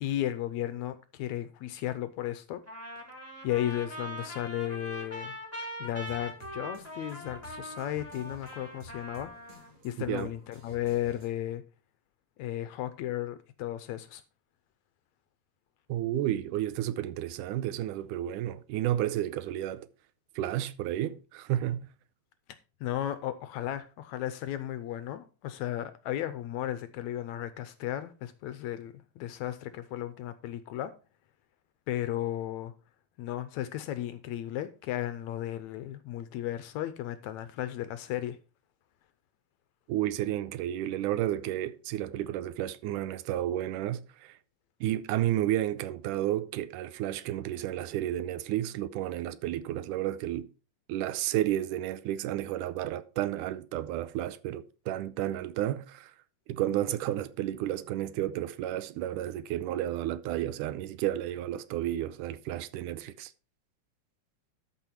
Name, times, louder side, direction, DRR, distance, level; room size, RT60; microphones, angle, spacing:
voice 1, 0.0-2.6 3.4-5.4 5.8-9.3 9.8-11.6 12.4-14.2 22.8-30.9 31.9-32.7 33.2-38.4, left 12 dB, 75° left, 1.8 m, -34 dB
Trumpet, 2.7-9.7, equal, 5° right, 2.4 m, -42 dB
sound 1, 6.1-11.6, left 1 dB, 45° right, 3.4 m, -53 dB
voice 2, 15.9-19.9 20.4-21.9 39.9-44.4 44.8-50.5 50.9-56.1 56.5-63.3, right 13 dB, 85° right, 2.2 m, -32 dB
13.0 x 5.7 x 4.4 m
omnidirectional pair, 3.7 m